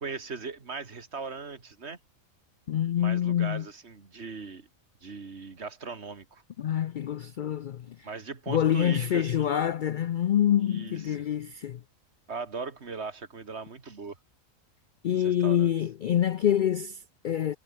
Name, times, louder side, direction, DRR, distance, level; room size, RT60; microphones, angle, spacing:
voice 1, 0.0-2.0 3.0-4.7 5.0-6.4 8.0-9.5 10.6-11.2 12.3-14.2 15.1-15.7, right 4 dB, 55° right, 2.4 m, -39 dB
voice 2, 2.7-3.6 6.6-8.1 8.5-11.8 15.0-17.6, left 10 dB, 85° left, 0.4 m, -26 dB
omnidirectional pair, 1.4 m